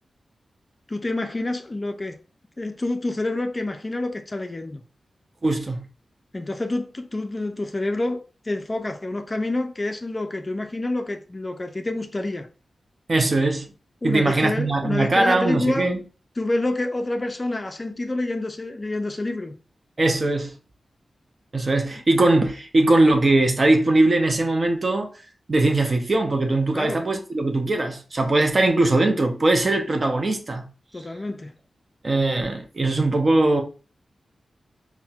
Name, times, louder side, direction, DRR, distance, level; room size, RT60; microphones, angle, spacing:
voice 1, 0.9-2.2 2.6-4.8 6.3-12.5 14.0-15.9 16.4-19.6 26.7-27.0 30.9-31.5, left 2 dB, 30° left, 0.4 m, -27 dB
voice 2, 5.4-5.8 13.1-13.7 14.0-16.0 20.0-20.6 21.5-25.1 25.5-30.7 32.0-33.6, right 2 dB, 40° right, 0.5 m, -20 dB
4.0 x 2.1 x 2.3 m
wide cardioid pair, 80°, 0 cm